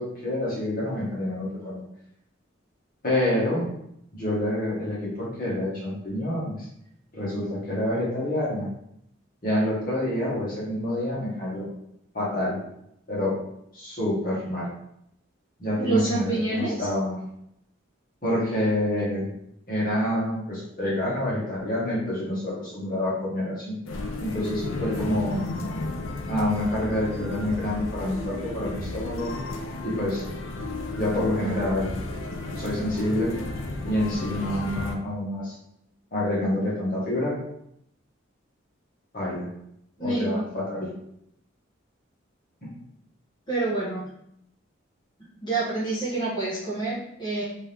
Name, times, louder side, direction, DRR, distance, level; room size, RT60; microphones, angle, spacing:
voice 1, 0.0-1.8 3.0-3.6 4.1-6.6 7.1-8.7 9.4-11.6 12.1-12.6 13.1-13.3 13.7-14.7 15.6-17.2 18.2-19.3 19.7-23.7 24.2-25.4 26.3-29.3 29.8-30.2 30.9-31.9 32.6-33.3 33.8-35.5 36.1-37.4 39.1-39.5 40.0-40.9 42.6-42.7, left 1 dB, 45° left, -6 dB, 1.4 m, -27 dB
voice 2, 15.8-16.9 40.0-40.4 43.5-44.1 45.4-47.4, right 2 dB, 25° left, -10 dB, 1.1 m, -27 dB
sound 1, 23.9-35.0, left 2 dB, 75° left, 0.5 m, -33 dB
3.5 x 2.8 x 3.4 m, 0.76 s
head